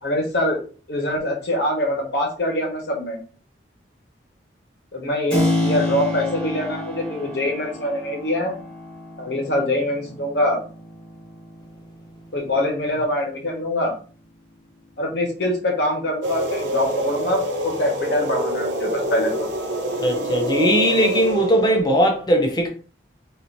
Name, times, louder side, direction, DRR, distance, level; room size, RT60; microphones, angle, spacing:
voice 1, 0.0-0.6 0.9-3.2 4.9-8.6 9.2-10.6 12.3-13.9 15.0-19.5, left 1 dB, 65° left, 1.3 m, -24 dB
Keyboard (musical), 5.3-13.9, left 1 dB, 5° left, 1.1 m, -29 dB
sound 1, 16.2-21.8, right 1 dB, 80° right, 1.0 m, -26 dB
voice 2, 20.0-22.7, equal, 20° left, 0.7 m, -19 dB
4.4 x 2.8 x 2.7 m
head